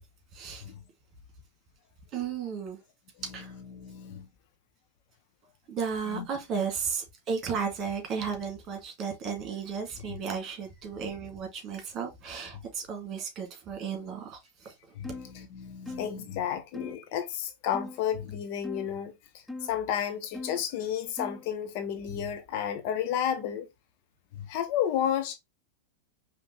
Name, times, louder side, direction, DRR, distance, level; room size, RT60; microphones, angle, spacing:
voice 1, 0.3-0.6 2.1-2.8 3.3-3.5 5.7-14.7 15.9-16.0, right 6 dB, 30° right, 2.1 m, -34 dB
voice 2, 3.7-4.3 6.1-6.3 15.0-19.1 19.6-23.7 24.4-25.4, left 9 dB, 45° left, 0.7 m, -32 dB
sound 1, 15.0-15.3 15.9-16.1 16.7-17.0 17.7-18.0 18.6-18.9 19.5-19.7 20.3-20.6 21.2-21.5, left 2 dB, 5° left, 0.3 m, -40 dB
5.0 x 3.1 x 3.1 m
figure-of-eight pair, 90°, 0 cm